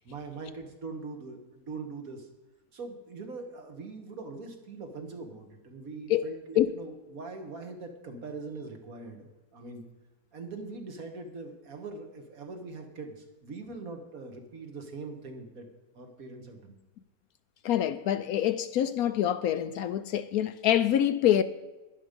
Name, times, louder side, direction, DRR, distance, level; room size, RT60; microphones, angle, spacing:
voice 1, 0.1-2.3 2.7-9.8 10.3-16.8, right 3 dB, 60° right, 1.8 m, -42 dB
voice 2, 6.1-6.7 17.6-21.4, left 11 dB, 70° left, 1.0 m, -26 dB
11.0 x 11.0 x 5.2 m
omnidirectional pair, 1.7 m